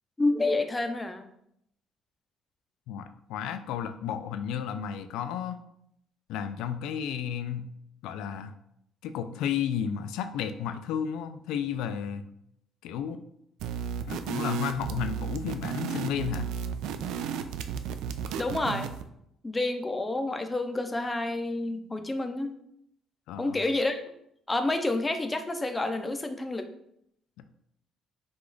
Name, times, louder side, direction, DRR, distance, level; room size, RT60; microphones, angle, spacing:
voice 1, 0.2-1.3 18.4-18.9 19.4-22.5 23.4-24.0 24.5-26.7, left 2 dB, 15° left, 6 dB, 0.4 m, -29 dB
voice 2, 2.9-5.6 6.3-7.7 8.0-8.5 9.0-12.3 12.8-13.2 14.1-16.5 23.3-23.6 27.4-27.5, left 8 dB, 90° left, 9 dB, 0.3 m, -32 dB
sound 1, 13.6-19.1, right 7 dB, 80° right, 0.3 m, -33 dB
5.0 x 2.3 x 3.8 m, 0.74 s
cardioid pair, 135°, 0 cm